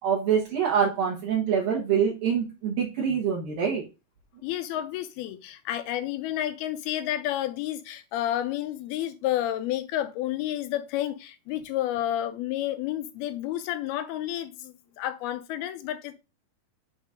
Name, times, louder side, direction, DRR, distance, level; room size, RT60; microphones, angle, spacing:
voice 1, 0.0-3.8, right 7 dB, 70° right, 3.0 m, -25 dB
voice 2, 4.4-16.1, left 12 dB, 80° left, 2.6 m, -30 dB
7.1 x 4.0 x 5.1 m
omnidirectional pair, 4.5 m